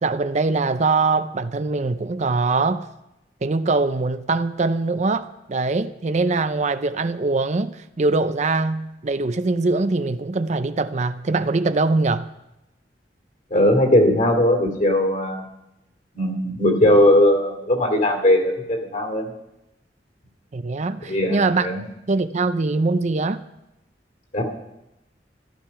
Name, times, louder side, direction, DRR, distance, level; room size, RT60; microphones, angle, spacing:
voice 1, 0.0-2.8 3.4-12.3 20.5-21.7 22.1-23.4, right 3 dB, 40° right, 0.5 m, -22 dB
voice 2, 13.5-15.4 16.1-19.3 21.1-21.8 24.3-24.4, left 1 dB, 45° left, 2.8 m, -19 dB
14.0 x 12.0 x 5.7 m
head